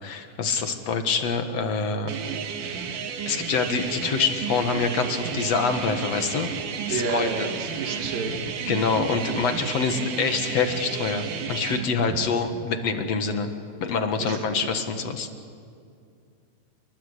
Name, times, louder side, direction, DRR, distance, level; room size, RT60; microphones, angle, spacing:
voice 1, 0.0-2.1 3.2-6.5 6.9-7.5 7.8-8.0 8.7-13.5 13.8-15.3, left 5 dB, 55° left, 6 dB, 2.5 m, -26 dB
sound 1, 2.1-11.9, right 6 dB, 70° right, 3.3 m, -32 dB
voice 2, 6.9-8.3 12.0-12.3 14.2-14.7, right 5 dB, 90° right, 4 dB, 3.6 m, -31 dB
29.5 x 23.5 x 8.4 m, 2.3 s
omnidirectional pair, 3.9 m